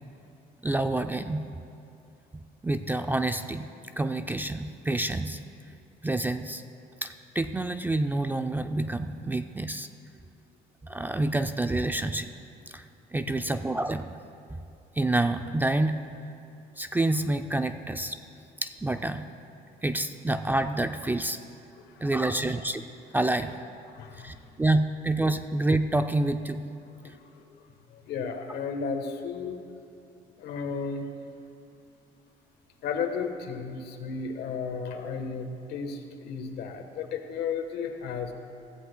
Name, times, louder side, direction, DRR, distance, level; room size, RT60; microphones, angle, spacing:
voice 1, 0.6-1.5 2.3-3.7 4.0-5.4 6.0-6.6 7.0-9.9 10.8-12.3 12.7-12.8 13.1-14.2 14.5-14.6 15.0-16.0 16.8-18.2 18.6-19.3 19.8-21.4 22.0-22.8 23.1-23.5 24.2-26.7 27.0-27.1, right 2 dB, 10° right, 8 dB, 0.4 m, -28 dB
voice 2, 21.8-22.1 23.9-24.6 27.0-29.6 30.4-31.1 32.8-38.3, left 5 dB, 75° left, 5 dB, 1.2 m, -34 dB
16.0 x 14.5 x 2.2 m, 2.8 s
cardioid pair, 110°, 17 cm